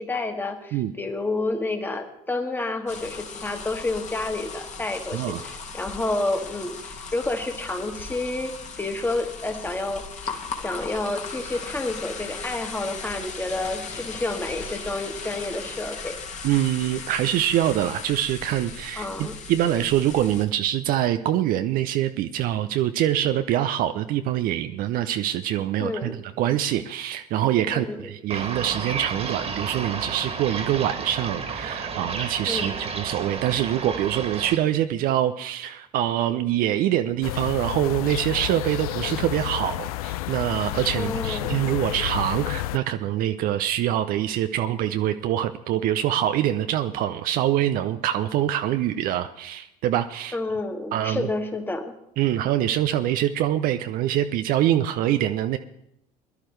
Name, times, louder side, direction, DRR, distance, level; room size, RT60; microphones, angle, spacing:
voice 1, 0.0-16.2 18.9-19.4 25.8-26.2 27.7-28.0 32.5-32.7 41.0-41.6 50.3-52.0, left 2 dB, 10° left, 4 dB, 1.8 m, -29 dB
sound 1, 2.9-20.4, left 5 dB, 35° left, 2.0 m, -37 dB
voice 2, 5.1-5.4 16.4-50.4 50.9-51.3 52.2-55.6, right 12 dB, 45° right, 9 dB, 0.6 m, -24 dB
sound 2, 28.3-34.6, right 5 dB, 30° right, 2.0 m, -32 dB
sound 3, 37.2-42.8, left 14 dB, 65° left, 0.4 m, -30 dB
21.5 x 11.5 x 3.3 m, 0.78 s
figure-of-eight pair, 65°, 20 cm